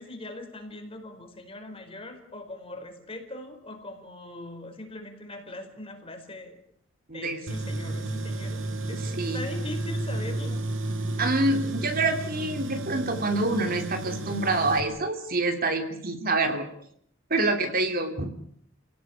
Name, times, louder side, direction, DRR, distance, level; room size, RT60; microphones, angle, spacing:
voice 1, 0.0-6.6 7.1-10.6, left 2 dB, 30° left, 5 dB, 4.6 m, -41 dB
voice 2, 7.1-7.4 9.0-9.4 11.2-16.6 17.3-18.3, right 2 dB, 45° right, 6 dB, 2.8 m, -26 dB
Tools, 7.5-14.8, right 2 dB, 70° right, 2.8 m, -32 dB
29.0 x 17.5 x 8.6 m, 0.66 s
head